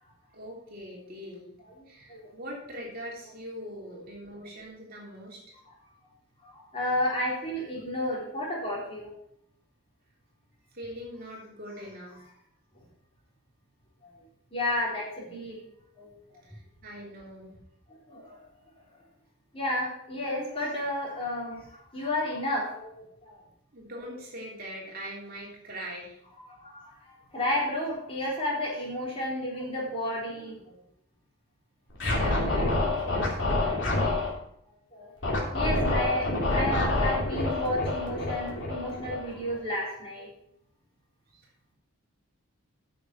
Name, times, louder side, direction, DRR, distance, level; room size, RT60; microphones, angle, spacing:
voice 1, 0.3-1.5 1.9-5.6 7.5-7.7 10.7-12.2 16.4-17.6 23.7-26.2 32.1-34.3 41.3-41.7, equal, 45° right, -3 dB, 3.3 m, -42 dB
voice 2, 6.4-9.1 14.0-14.1 14.5-15.6 16.0-16.1 18.1-18.4 19.5-21.6 21.9-23.4 26.5-26.9 27.3-30.6 34.9-40.3, left 1 dB, 25° left, -5 dB, 3.7 m, -32 dB
Scratching (performance technique), 31.9-34.3 35.2-39.5, left 2 dB, 55° left, 3.1 m, -27 dB
9.9 x 6.6 x 6.0 m, 0.73 s
head